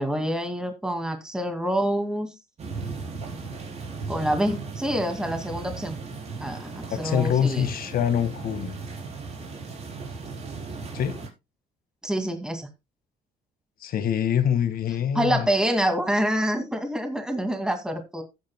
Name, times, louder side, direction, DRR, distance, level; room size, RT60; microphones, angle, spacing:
voice 1, 0.0-2.3 4.1-6.0 6.4-6.7 7.0-7.7 12.0-12.7 15.1-18.2, equal, 5° right, 2.2 m, -26 dB
sound 1, 2.6-11.3, right 4 dB, 40° right, 4.3 m, -36 dB
voice 2, 6.9-8.8 10.9-11.1 13.8-15.5, left 8 dB, 60° left, 1.7 m, -25 dB
14.5 x 9.0 x 2.2 m
cardioid pair, 110°, 17 cm